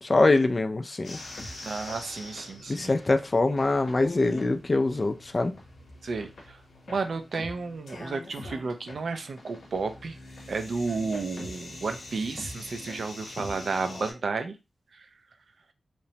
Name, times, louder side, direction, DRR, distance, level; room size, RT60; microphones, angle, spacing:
voice 1, 0.0-1.2 2.7-5.5, left 2 dB, 35° left, 8 dB, 0.3 m, -24 dB
sound 1, 1.0-14.1, left 2 dB, 85° left, 0.8 m, -43 dB
voice 2, 1.6-2.9 6.0-6.6 6.9-10.2 10.5-14.6 14.9-15.1, right 4 dB, 70° right, 8 dB, 0.4 m, -32 dB
2.9 x 2.0 x 2.7 m, 0.27 s
wide cardioid pair, 100°, 0 cm